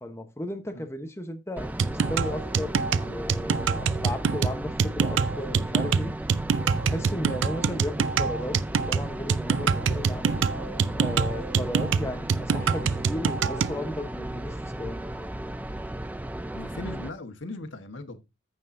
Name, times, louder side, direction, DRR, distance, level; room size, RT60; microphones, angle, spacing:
voice 1, 0.0-6.1 6.6-10.4 10.9-15.0, left 1 dB, 15° left, 0.9 m, -35 dB
sound 1, 1.6-17.1, right 1 dB, 10° right, 0.4 m, -35 dB
sound 2, 1.8-13.8, right 5 dB, 85° right, 0.4 m, -25 dB
voice 2, 16.5-18.2, left 2 dB, 90° left, 1.4 m, -38 dB
14.5 x 5.5 x 2.6 m
head